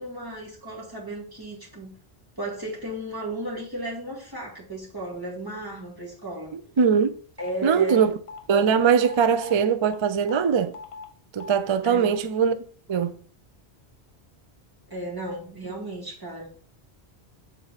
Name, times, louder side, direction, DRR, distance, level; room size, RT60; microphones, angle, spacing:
voice 1, 0.0-1.9 2.4-6.6 7.4-8.1 11.8-12.2 14.9-16.5, right 1 dB, 20° right, 2.3 m, -35 dB
voice 2, 6.5-7.1 7.6-8.2 8.5-10.8 11.3-12.6 12.9-13.2, right 7 dB, 45° right, 0.3 m, -21 dB
sound 1, 7.4-7.5 7.9-8.0 8.3-8.8 9.0-9.2 9.4-9.5 9.8-10.0 10.3-10.4 10.7-11.1 11.4-11.5, left 4 dB, 70° left, 1.2 m, -39 dB
7.0 x 4.4 x 4.1 m
omnidirectional pair, 1.1 m